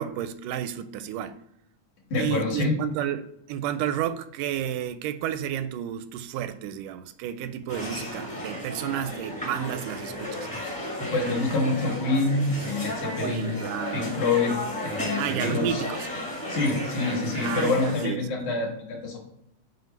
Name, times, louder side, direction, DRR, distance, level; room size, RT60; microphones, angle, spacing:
voice 1, 0.0-1.4 2.2-10.5 13.2-14.1 15.2-16.1 17.4-18.3, right 10 dB, 85° right, 2.1 m, -31 dB
voice 2, 2.1-2.8 11.0-13.5 13.9-14.6 14.8-15.8 16.5-19.2, left 3 dB, 70° left, 2.9 m, -26 dB
sound 1, 7.7-18.1, left 1 dB, 5° left, 0.7 m, -34 dB
7.7 x 2.6 x 5.9 m
omnidirectional pair, 3.6 m